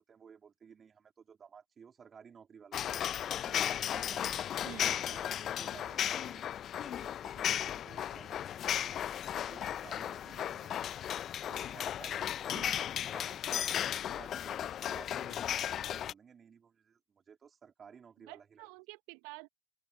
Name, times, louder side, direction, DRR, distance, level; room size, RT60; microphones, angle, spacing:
voice 1, 0.0-3.0 3.4-4.4 5.1-5.2 5.6-6.4 6.8-9.0 9.4-10.9 11.5-12.6 13.0-18.7, right 6 dB, 30° right, 3.7 m, -55 dB
sound 1, 2.7-16.1, left 10 dB, 40° left, 0.8 m, -35 dB
voice 2, 4.6-5.0 12.5-12.8 18.3-19.5, right 28 dB, 60° right, 1.0 m, -49 dB
hypercardioid pair, 80°, 0 cm